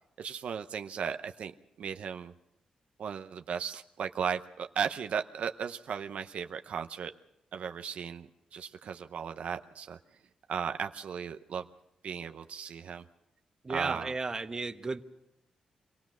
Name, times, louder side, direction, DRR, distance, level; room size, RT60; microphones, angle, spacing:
voice 1, 0.2-2.3 3.0-7.1 7.5-10.0 10.5-11.6 12.0-13.0 13.7-14.2, right 7 dB, 70° right, 7 dB, 0.7 m, -36 dB
voice 2, 13.6-15.0, right 3 dB, 30° right, 7 dB, 1.1 m, -34 dB
25.5 x 17.0 x 6.2 m, 0.84 s
cardioid pair, 90°, 2 cm